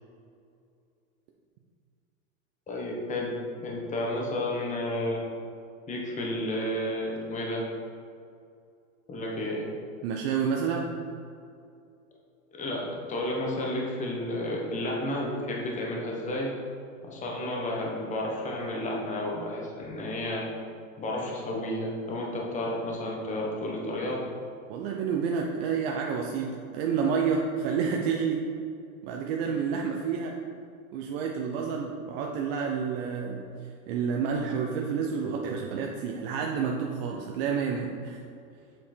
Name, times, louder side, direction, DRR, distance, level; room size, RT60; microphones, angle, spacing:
voice 1, 2.7-3.3 3.6-5.2 5.9-7.6 9.1-9.7 12.6-12.8 13.1-16.5 17.0-20.4 21.0-24.2, left 1 dB, 15° left, -2 dB, 1.3 m, -31 dB
voice 2, 10.0-11.0 24.7-28.5 29.0-30.4 30.9-33.5 33.9-38.2, right 6 dB, 45° right, 0 dB, 0.7 m, -29 dB
7.4 x 5.8 x 4.5 m, 2.5 s
hypercardioid pair, 135°, 43 cm